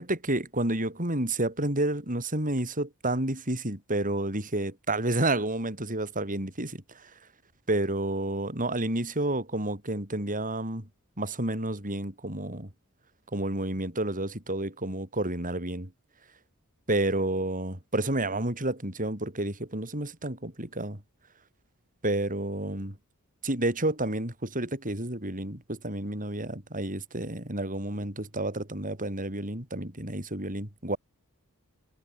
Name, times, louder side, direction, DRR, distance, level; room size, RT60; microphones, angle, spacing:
voice 1, 0.0-7.1 7.7-10.9 11.2-12.7 13.3-15.9 16.9-21.0 22.0-23.0 23.4-31.0, right 1 dB, 40° right, 7.4 m, -30 dB
head